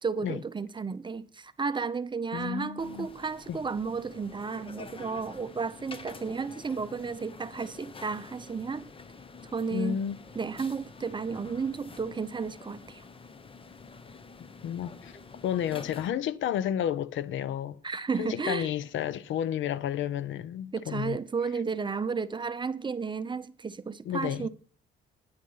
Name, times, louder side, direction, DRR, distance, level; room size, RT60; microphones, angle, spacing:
voice 1, 0.0-8.9 9.5-10.0 10.3-13.0 17.8-18.7 20.7-24.5, right 5 dB, 25° right, 0.7 m, -33 dB
voice 2, 2.3-3.1 3.5-3.6 9.7-10.2 14.6-15.1 15.4-17.8 18.2-21.2 24.0-24.5, left 10 dB, 75° left, 0.6 m, -31 dB
sound 1, 2.8-16.1, left 4 dB, 25° left, 0.9 m, -48 dB
9.7 x 7.4 x 5.5 m
cardioid pair, 90°, 20 cm